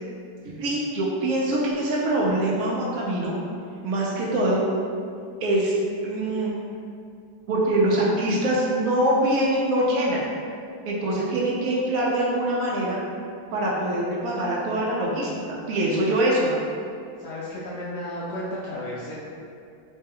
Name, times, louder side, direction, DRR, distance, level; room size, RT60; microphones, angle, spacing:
voice 1, 0.6-3.3 3.8-4.6 5.4-6.5 7.5-10.3 10.9-13.0 13.5-16.6, right 1 dB, 80° right, -4 dB, 0.7 m, -24 dB
voice 2, 17.2-19.2, left 1 dB, 70° left, -7 dB, 1.0 m, -33 dB
3.3 x 2.2 x 3.4 m, 2.4 s
omnidirectional pair, 2.1 m